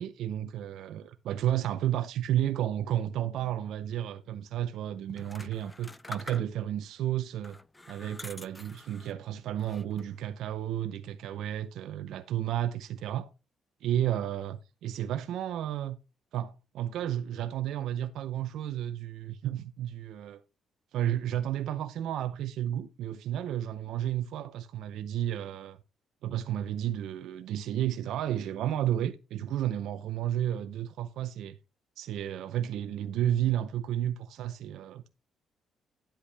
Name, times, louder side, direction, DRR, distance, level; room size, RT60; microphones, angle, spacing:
voice 1, 0.0-7.6 7.9-13.3 13.8-16.0 16.3-20.4 20.9-25.8 26.2-31.6 32.0-35.1, right 11 dB, 80° right, 0.6 m, -32 dB
sound 1, 5.1-6.8 7.4-9.2 9.6-10.2, left 2 dB, 15° left, 0.4 m, -46 dB
10.0 x 8.0 x 3.3 m
cardioid pair, 90°, 0 cm